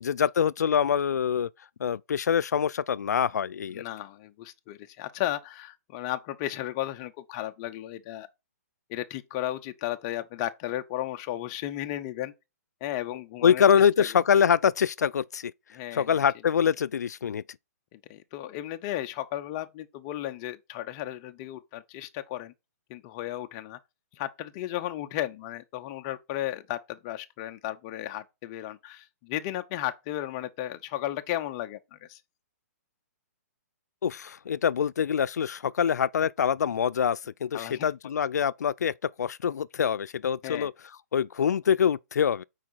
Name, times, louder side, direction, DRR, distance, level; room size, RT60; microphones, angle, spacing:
voice 1, 0.0-1.5 1.8-3.8 13.4-15.5 15.9-17.4 34.0-40.7 41.1-42.4, left 8 dB, 85° left, 0.4 m, -25 dB
voice 2, 3.7-8.3 8.9-12.3 12.8-13.6 14.0-14.1 15.7-16.2 17.9-22.5 22.9-23.8 24.2-32.2 37.5-37.9 40.4-40.7, left 13 dB, 25° left, 0.6 m, -34 dB
7.5 x 4.7 x 4.1 m
hypercardioid pair, 165°, 9 cm